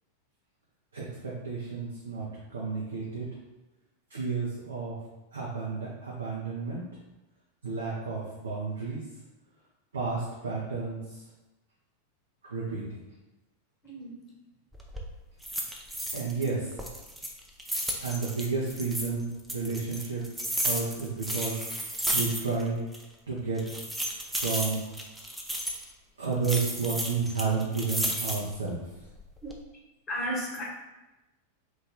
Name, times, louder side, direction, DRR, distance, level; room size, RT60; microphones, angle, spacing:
voice 1, 0.9-3.3 4.1-5.0 5.3-6.8 7.6-9.0 9.9-11.2 12.4-13.0 16.1-16.7 18.0-20.2 20.6-21.7 22.1-22.8 23.3-23.6 24.2-24.8 26.2-28.8, right 4 dB, 70° right, -5 dB, 0.7 m, -31 dB
voice 2, 13.8-14.2 29.4-29.6 30.1-30.6, equal, 25° left, -3 dB, 1.0 m, -33 dB
sound 1, 14.7-15.1 15.4-16.5 16.8-19.1 19.5-22.7 22.9-23.0 23.6-25.8 26.4-28.6 29.1-29.6, equal, 5° right, 0.5 m, -33 dB
3.1 x 2.5 x 3.9 m, 1.0 s
figure-of-eight pair, 90°, 0 cm